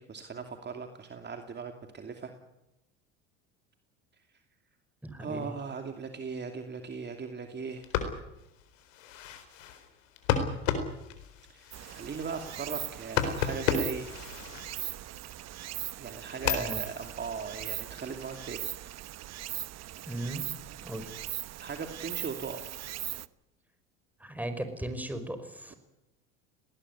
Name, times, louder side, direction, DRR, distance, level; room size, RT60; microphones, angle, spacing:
voice 1, 0.0-2.3 5.2-7.9 11.5-14.1 16.0-18.9 21.6-22.8, right 5 dB, 30° right, 5 dB, 2.6 m, -39 dB
voice 2, 5.0-5.5 16.6-16.8 20.1-20.4 20.8-21.1 24.2-25.8, right 1 dB, 5° right, 9 dB, 5.1 m, -37 dB
sound 1, 7.7-15.3 15.8-18.5, left 7 dB, 80° left, 4.3 m, -34 dB
Stream, 11.7-23.3, right 14 dB, 45° right, 1.1 m, -40 dB
19.5 x 19.0 x 9.8 m, 0.92 s
hypercardioid pair, 85°, 37 cm